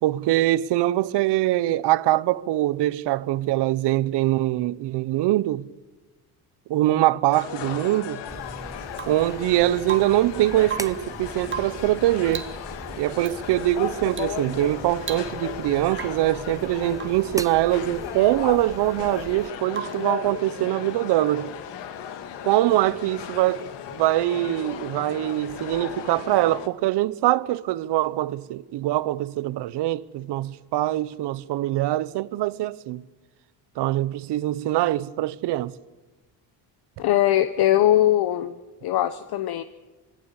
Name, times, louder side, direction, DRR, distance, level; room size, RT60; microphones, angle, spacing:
voice 1, 0.0-5.7 6.7-8.2 9.1-12.5 13.0-21.5 22.4-23.7 23.9-33.0 33.8-35.8, right 15 dB, 75° right, 0.9 m, -23 dB
sound 1, 7.3-26.7, left 8 dB, 85° left, 2.0 m, -36 dB
sound 2, 8.3-19.5, right 2 dB, 10° right, 0.6 m, -41 dB
Rain / Water tap faucet / Drip, 8.9-9.3 9.8-10.3 10.6-11.1 11.5-11.9 12.3-12.6 13.2-13.4 14.1-14.4 14.7-14.8 15.0-15.6 15.9-16.3 16.9-17.3 19.7-20.1 22.0-22.1, right 7 dB, 30° right, 1.7 m, -36 dB
voice 2, 37.0-38.6 38.8-39.6, left 12 dB, 65° left, 1.0 m, -20 dB
24.5 x 17.0 x 8.3 m
cardioid pair, 120°, 41 cm